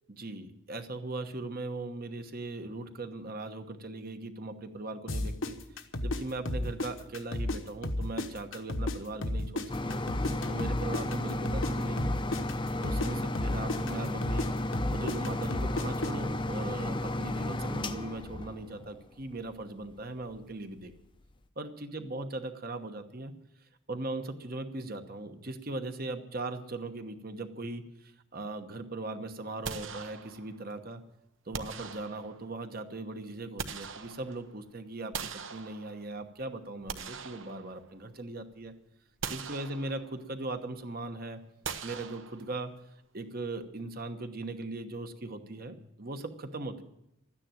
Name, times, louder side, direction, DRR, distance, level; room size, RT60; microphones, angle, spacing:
voice 1, 0.1-10.0 10.5-12.2 12.8-14.5 14.9-20.9 21.6-23.3 23.9-31.0 31.4-38.7 39.3-41.4 41.8-42.7 43.1-46.8, right 2 dB, 45° right, 7 dB, 1.1 m, -39 dB
sound 1, 5.1-7.6 7.8-11.7 12.0-16.1, left 1 dB, 65° left, 1.1 m, -32 dB
sound 2, 9.7-19.2 19.8-19.9 20.4-20.5, left 1 dB, 25° left, 0.6 m, -33 dB
sound 3, 29.6-30.7 31.5-32.6 33.2-34.6 35.1-36.2 36.7-38.1 38.5-38.7 39.2-40.3 41.6-42.8, right 6 dB, 65° right, 1.0 m, -41 dB
13.0 x 9.9 x 8.9 m, 0.83 s
head